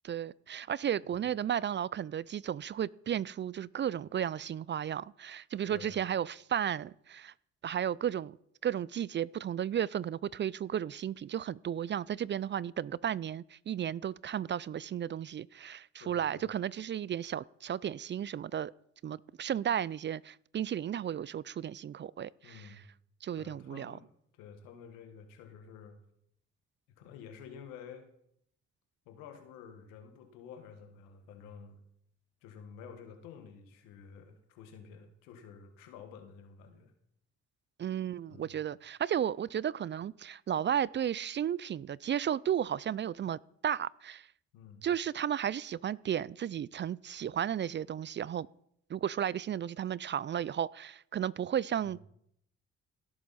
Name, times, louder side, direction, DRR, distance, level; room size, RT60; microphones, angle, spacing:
voice 1, 0.0-7.3 7.6-8.4 8.6-18.7 19.0-22.7 23.2-24.0 37.8-44.3 44.8-48.5 48.9-52.0, right 9 dB, 35° right, 0.4 m, -34 dB
voice 2, 5.7-6.0 16.0-16.5 22.4-22.9 23.4-24.1 24.4-26.0 26.9-28.1 29.1-31.8 32.4-36.9 38.3-38.5 44.5-44.9 51.8-52.0, left 7 dB, 90° left, 1.6 m, -50 dB
17.0 x 7.6 x 4.2 m
supercardioid pair, 50°, 31 cm